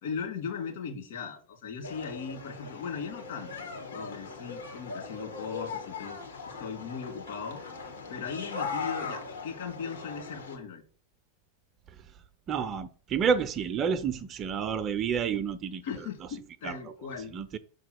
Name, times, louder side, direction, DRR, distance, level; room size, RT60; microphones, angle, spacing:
voice 1, 0.0-3.5 3.9-6.2 6.4-7.8 8.1-10.8 15.8-17.3, left 6 dB, 55° left, 2.4 m, -38 dB
sound 1, 1.8-10.6, left 5 dB, 70° left, 1.8 m, -39 dB
voice 2, 12.5-15.8 16.6-16.9 17.3-17.6, right 7 dB, 30° right, 0.5 m, -29 dB
6.2 x 3.7 x 5.9 m
figure-of-eight pair, 90°, 0 cm